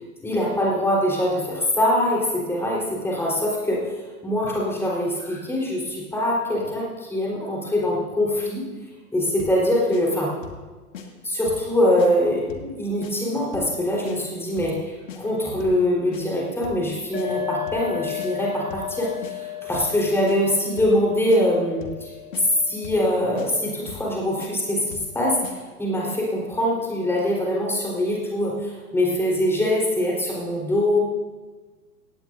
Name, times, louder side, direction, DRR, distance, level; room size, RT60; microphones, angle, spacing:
voice 1, 0.2-3.9 4.2-8.6 9.1-10.3 11.2-22.1 22.7-24.8 25.1-25.4 25.8-31.0, left 1 dB, 5° left, -4 dB, 4.0 m, -23 dB
sound 1, 9.4-9.6 9.9-10.0 10.4-10.6 10.9-11.1 11.5-11.7 12.0-12.1 12.5-12.7 13.0-13.1 13.5-13.7 14.0-14.2 14.6-14.8 15.1-15.2 15.6-15.8 16.1-16.2 16.6-16.9 17.1-17.3 17.7-17.9 18.2-18.3 18.7-18.9 19.2-19.3 19.7-20.0 20.3-20.4 20.8-21.0 21.3-21.4 21.8-22.0 22.3-22.4 22.8-23.1 23.4-23.5 23.9-24.1 24.4-24.5 24.9-25.1 25.4-25.6, left 7 dB, 55° left, 2.0 m, -38 dB
sound 2, 17.1-24.6, left 13 dB, 75° left, 3.3 m, -35 dB
17.0 x 17.0 x 2.7 m, 1.3 s
figure-of-eight pair, 110°, 46 cm